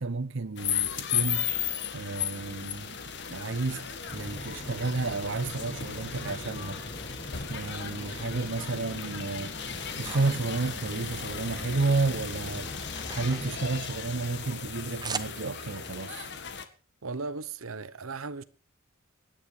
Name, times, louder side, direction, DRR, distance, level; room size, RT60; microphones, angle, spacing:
voice 1, 0.0-1.5 1.9-3.0 3.3-6.8 7.5-9.5 10.0-16.3, right 3 dB, 60° right, 0.8 m, -31 dB
sound 1, 0.6-16.6, left 8 dB, 55° left, 1.8 m, -36 dB
sound 2, 3.5-5.9 6.4-7.5 7.8-8.8 9.2-11.8 12.0-15.8, right 5 dB, 20° right, 0.9 m, -45 dB
sound 3, 4.0-13.8, equal, 30° left, 5.3 m, -43 dB
voice 2, 17.0-18.4, right 4 dB, 85° right, 0.9 m, -36 dB
24.5 x 9.9 x 4.9 m
head